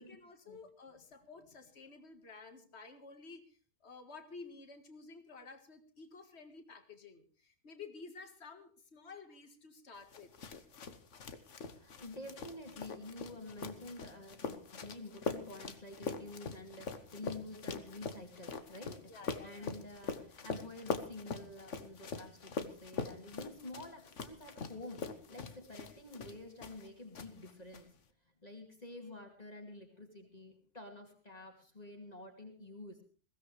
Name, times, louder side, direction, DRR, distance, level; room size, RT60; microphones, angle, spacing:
voice 1, 0.0-3.6 3.8-10.3 19.1-19.7, left 4 dB, 65° left, 6 dB, 2.1 m, -52 dB
sound 1, 10.1-26.9 27.1-27.8, left 5 dB, 90° left, 1.6 m, -43 dB
voice 2, 11.6-28.0 28.4-33.0, left 2 dB, 35° left, 3 dB, 2.6 m, -49 dB
22.0 x 16.5 x 3.3 m, 0.38 s
omnidirectional pair, 1.2 m